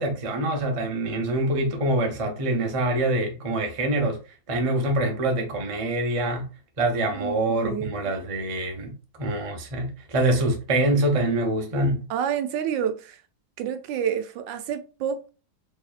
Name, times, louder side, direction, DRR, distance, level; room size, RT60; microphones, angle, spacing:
voice 1, 0.0-4.2 4.5-6.5 6.8-12.1, right 1 dB, 30° right, 0.6 m, -25 dB
voice 2, 7.1-7.9 12.1-13.2 13.6-15.3, right 8 dB, 80° right, 1.3 m, -29 dB
4.2 x 3.1 x 2.4 m
omnidirectional pair, 2.0 m